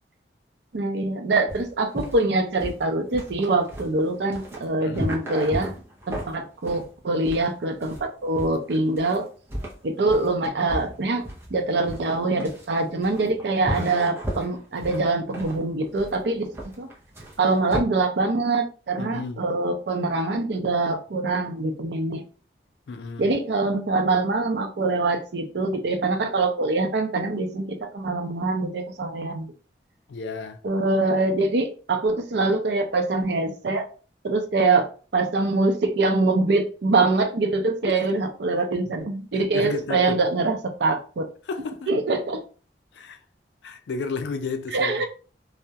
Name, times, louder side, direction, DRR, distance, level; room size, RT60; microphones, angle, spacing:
voice 1, 0.7-5.7 6.1-9.3 9.8-11.2 11.5-16.5 16.8-16.9 17.4-22.2 23.2-29.5 30.6-33.9 34.2-34.9 35.1-41.3 41.9-42.4 44.7-45.1, right 3 dB, 70° right, 0.5 m, -24 dB
sound 1, 1.5-17.8, equal, 15° right, 0.5 m, -35 dB
voice 2, 4.8-5.2 19.0-19.4 22.9-23.3 30.1-30.6 37.9-38.0 39.5-40.2 41.5-41.9 42.9-43.2 43.6-45.1, left 4 dB, 75° left, 0.4 m, -32 dB
2.2 x 2.0 x 2.7 m
head